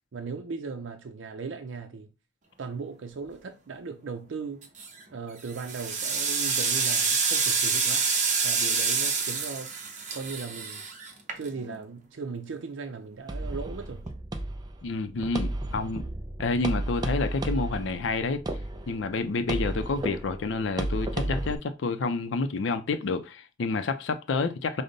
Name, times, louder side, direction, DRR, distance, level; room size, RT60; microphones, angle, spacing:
voice 1, 0.1-2.1 2.6-4.7 5.1-8.1 8.4-9.7 10.1-10.8 11.4-14.1, right 4 dB, 85° right, 0.5 m, -37 dB
sound 1, 4.6-5.0 5.5-11.8, right 5 dB, 40° right, 0.8 m, -27 dB
sound 2, 13.3-21.6, right 1 dB, 20° right, 0.4 m, -33 dB
voice 2, 14.8-16.1 16.4-18.4 18.9-24.8, left 3 dB, 80° left, 0.5 m, -29 dB
5.1 x 2.1 x 3.9 m
head